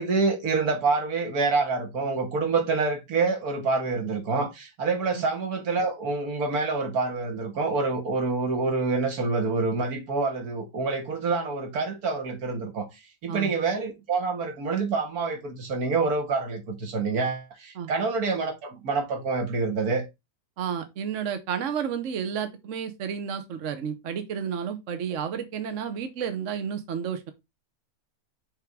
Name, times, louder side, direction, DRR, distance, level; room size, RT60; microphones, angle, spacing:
voice 1, 0.0-12.9 13.2-20.0, right 4 dB, 80° right, 2.0 m, -27 dB
voice 2, 20.6-27.3, right 7 dB, 60° right, 1.1 m, -31 dB
6.0 x 3.7 x 4.6 m
omnidirectional pair, 1.6 m